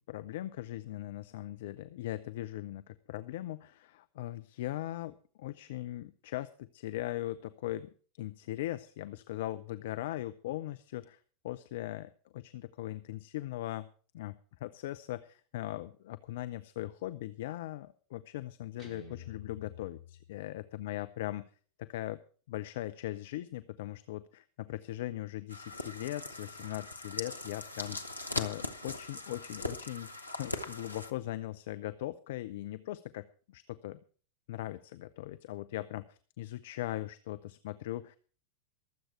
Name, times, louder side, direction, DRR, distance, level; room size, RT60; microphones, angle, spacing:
voice 1, 0.0-7.9 8.2-11.2 11.4-13.9 14.1-21.5 21.8-22.2 22.5-28.0 28.4-34.0 34.5-38.2, left 14 dB, 55° left, 12 dB, 0.6 m, -39 dB
Guitar, 18.8-20.8, left 6 dB, 15° right, 4.3 m, -50 dB
sound 1, 25.5-31.1, left 2 dB, 85° left, 1.2 m, -40 dB
23.5 x 7.9 x 4.4 m, 0.42 s
figure-of-eight pair, 90°, 0 cm